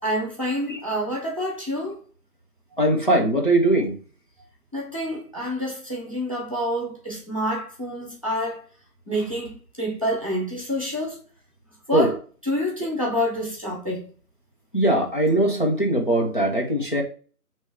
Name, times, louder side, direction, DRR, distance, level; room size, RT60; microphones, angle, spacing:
voice 1, 0.0-2.0 4.7-8.6 9.1-11.2 11.9-12.2 12.5-14.0, equal, 20° right, 1.0 m, -27 dB
voice 2, 2.8-4.0 11.9-12.1 14.7-17.0, right 1 dB, 35° left, 1.0 m, -20 dB
8.8 x 3.1 x 3.5 m
figure-of-eight pair, 175°, 46 cm